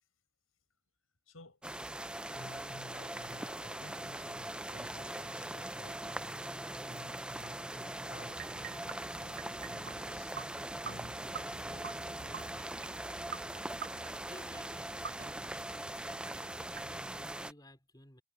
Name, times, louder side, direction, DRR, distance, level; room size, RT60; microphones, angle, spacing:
voice 1, 1.3-1.6 2.3-12.7, left 1 dB, 75° left, 7.0 m, -55 dB
sound 1, 1.6-17.5, right 1 dB, 5° right, 0.3 m, -41 dB
sound 2, 8.3-17.3, right 6 dB, 45° right, 0.6 m, -48 dB
voice 2, 14.2-15.6 16.7-18.2, left 1 dB, 20° left, 4.2 m, -56 dB
head